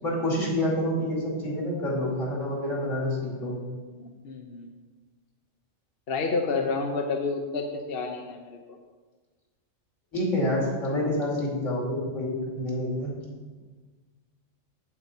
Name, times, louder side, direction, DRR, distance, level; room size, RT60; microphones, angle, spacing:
voice 1, 0.0-3.6 10.1-13.1, left 1 dB, 75° left, -4 dB, 3.0 m, -28 dB
voice 2, 4.0-4.7 6.1-8.6, left 4 dB, 55° left, 3 dB, 0.9 m, -30 dB
8.5 x 8.2 x 4.3 m, 1.4 s
omnidirectional pair, 1.3 m